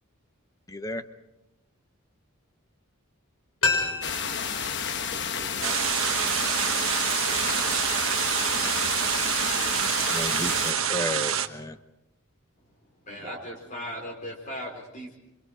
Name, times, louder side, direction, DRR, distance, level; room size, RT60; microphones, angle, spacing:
voice 1, 0.7-1.0 10.1-11.8, left 1 dB, 15° left, 10 dB, 1.0 m, -33 dB
sound 1, 3.6-6.4 6.7-6.8, left 4 dB, 85° left, 6.1 m, -31 dB
sound 2, 4.0-10.7, left 7 dB, 55° left, 1.1 m, -31 dB
voice 2, 4.9-6.7 7.3-8.4 13.2-13.5, right 1 dB, 20° right, -7 dB, 3.7 m, -46 dB
sound 3, 5.6-11.5, right 9 dB, 60° right, 1.3 m, -26 dB
voice 3, 13.0-15.2, equal, 35° left, 1 dB, 4.1 m, -37 dB
28.0 x 25.5 x 5.0 m, 0.89 s
head